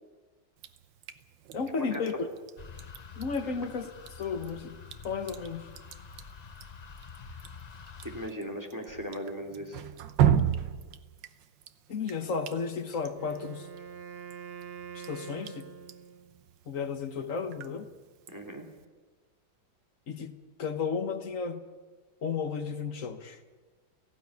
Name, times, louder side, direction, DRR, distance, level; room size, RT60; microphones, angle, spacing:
Drip, 0.6-18.8, right 9 dB, 85° right, 1.6 m, -36 dB
voice 1, 1.5-2.3 3.2-3.9 4.2-4.8 5.0-5.7 11.9-13.7 14.9-15.7 16.7-17.9 20.1-21.6 22.2-23.4, left 5 dB, 50° left, 1.5 m, -33 dB
sound 1, 2.6-8.3, left 6 dB, 85° left, 0.3 m, -47 dB
voice 2, 8.0-9.8 18.3-18.7, equal, 10° right, 2.6 m, -38 dB
Wind instrument woodwind instrument, 13.1-16.4, right 7 dB, 45° right, 0.9 m, -45 dB
17.5 x 15.5 x 9.6 m
omnidirectional pair, 1.9 m